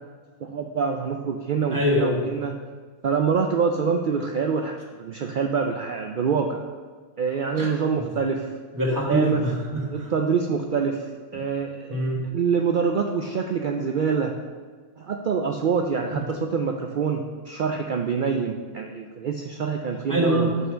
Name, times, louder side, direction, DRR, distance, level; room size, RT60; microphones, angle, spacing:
voice 1, 0.4-2.5 3.0-6.6 7.2-8.5 9.1-9.4 9.9-11.0 11.3-12.0 12.3-14.4 15.0-20.5, right 6 dB, 85° right, 3 dB, 0.4 m, -25 dB
voice 2, 1.7-2.2 7.5-7.7 8.0-8.1 8.7-10.1 11.3-11.4 11.9-12.2 20.1-20.7, equal, 15° right, -4 dB, 1.5 m, -24 dB
5.6 x 5.5 x 6.2 m, 1.5 s
omnidirectional pair, 1.4 m